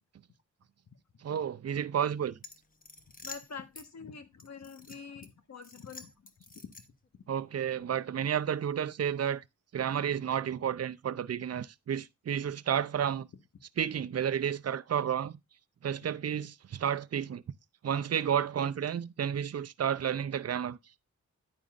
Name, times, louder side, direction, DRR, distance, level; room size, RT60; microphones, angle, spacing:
voice 1, 1.2-2.4 7.3-9.4 9.7-13.3 13.8-15.4 15.8-17.4 17.8-20.8, right 8 dB, 55° right, 0.6 m, -31 dB
sound 1, 2.4-3.9 4.4-5.3 5.6-7.1, left 3 dB, 30° left, 1.1 m, -49 dB
voice 2, 3.2-6.1 6.6-6.7, left 5 dB, 60° left, 1.5 m, -45 dB
9.9 x 9.2 x 2.5 m
wide cardioid pair, 110°, 31 cm